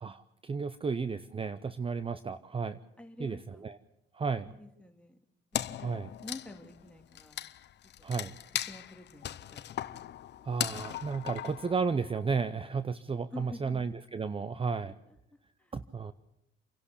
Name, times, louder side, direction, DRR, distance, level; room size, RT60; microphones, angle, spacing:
voice 1, 0.0-2.8 3.2-3.4 3.6-3.8 4.1-4.5 5.8-6.1 8.0-8.3 10.4-14.9 15.7-16.1, right 5 dB, 30° right, 13 dB, 0.7 m, -33 dB
voice 2, 3.0-3.7 4.4-5.2 5.5-7.5 8.1-8.4 8.7-9.9 13.3-14.0 15.1-15.2 15.6-15.7, left 1 dB, 5° left, 3 dB, 2.5 m, -48 dB
Wood, 5.5-12.2, left 11 dB, 60° left, 0.7 m, -38 dB
27.5 x 11.5 x 8.3 m, 0.87 s
cardioid pair, 90°, 20 cm